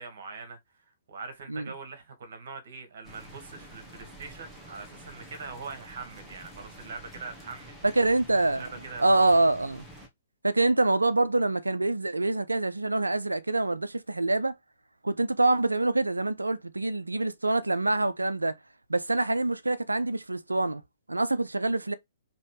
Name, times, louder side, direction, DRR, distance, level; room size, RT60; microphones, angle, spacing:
voice 1, 0.0-7.8 8.5-9.3, right 4 dB, 55° right, 1.4 m, -43 dB
sound 1, 3.0-10.1, right 1 dB, 5° right, 1.2 m, -48 dB
voice 2, 7.8-8.7 9.0-9.8 10.4-14.6 15.0-18.6 18.9-20.8 21.1-21.9, right 2 dB, 85° right, 0.5 m, -25 dB
4.1 x 3.0 x 3.0 m
figure-of-eight pair, 120°, 0 cm